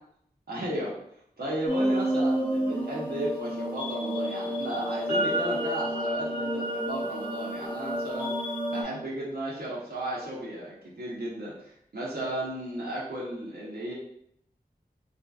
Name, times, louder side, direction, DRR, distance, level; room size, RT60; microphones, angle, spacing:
voice 1, 0.5-1.0 1.4-8.3 8.7-13.9, right 1 dB, 75° right, -7 dB, 0.8 m, -34 dB
sound 1, 1.7-8.8, right 1 dB, 10° right, 1.0 m, -29 dB
3.0 x 2.6 x 2.3 m, 0.70 s
wide cardioid pair, 50°, 16 cm